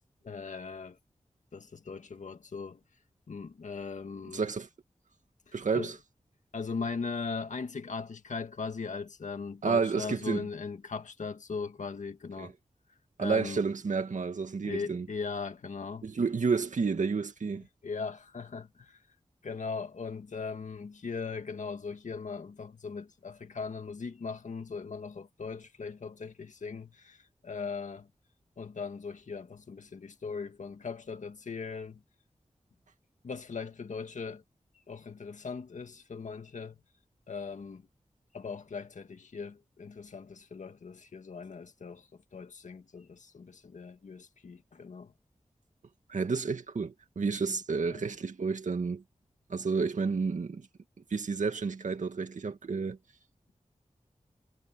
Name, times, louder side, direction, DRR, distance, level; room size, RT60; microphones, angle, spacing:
voice 1, 0.2-1.0 1.5-2.8 3.3-4.4 5.5-5.9 6.5-12.5 13.2-13.6 14.6-16.1 17.8-19.0 19.4-28.1 28.6-32.0 33.2-34.4 34.9-36.8 37.3-37.8 38.3-45.1 47.9-48.0, left 5 dB, 80° left, 1.8 m, -39 dB
voice 2, 4.3-4.7 5.5-6.0 9.6-10.4 12.4-12.5 13.2-15.1 16.0-17.7 46.1-49.0 49.5-50.7 51.1-53.0, right 5 dB, 85° right, 2.0 m, -30 dB
wide cardioid pair, 75°, 13 cm